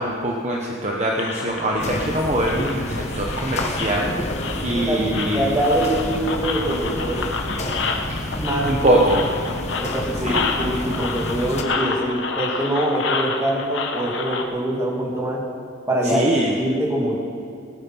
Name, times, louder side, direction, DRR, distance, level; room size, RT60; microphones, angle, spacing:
voice 1, 0.0-4.1 4.6-5.5 8.6-9.2 10.2-10.4 16.0-16.5, right 1 dB, 35° right, -1 dB, 1.1 m, -22 dB
sound 1, 1.1-14.4, left 4 dB, 70° left, 1.3 m, -29 dB
sound 2, 1.8-11.6, left 1 dB, 35° left, 1.2 m, -29 dB
voice 2, 5.3-7.3 8.4-9.0 9.8-15.4 15.9-16.3 16.6-17.2, right 1 dB, 15° right, -3 dB, 2.4 m, -24 dB
18.5 x 9.1 x 6.2 m, 2.5 s
head